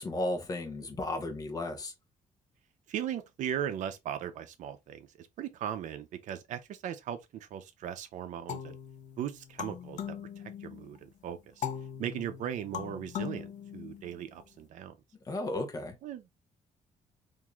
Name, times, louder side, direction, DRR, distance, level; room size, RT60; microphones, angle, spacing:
voice 1, 0.0-1.9 15.3-16.0, left 1 dB, 30° left, 0.7 m, -34 dB
voice 2, 2.9-8.8 9.2-10.0 10.6-11.6 12.0-15.0 16.0-16.3, right 9 dB, 70° right, 0.6 m, -38 dB
sound 1, 8.5-11.0 11.6-14.4, left 9 dB, 70° left, 0.6 m, -40 dB
3.6 x 2.6 x 3.0 m
cardioid pair, 165°, 13 cm